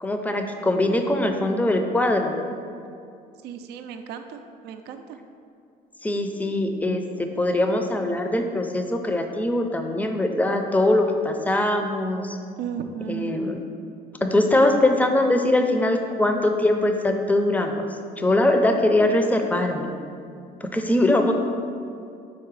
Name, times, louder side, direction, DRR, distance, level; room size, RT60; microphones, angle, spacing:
voice 1, 0.0-2.3 6.0-12.4 13.1-13.6 14.2-17.9 18.2-20.0 20.6-21.3, left 1 dB, 10° left, 5 dB, 0.5 m, -22 dB
voice 2, 3.4-5.2 12.6-13.4, right 8 dB, 75° right, 7 dB, 0.4 m, -34 dB
4.7 x 4.3 x 4.7 m, 2.4 s
cardioid pair, 110°, 17 cm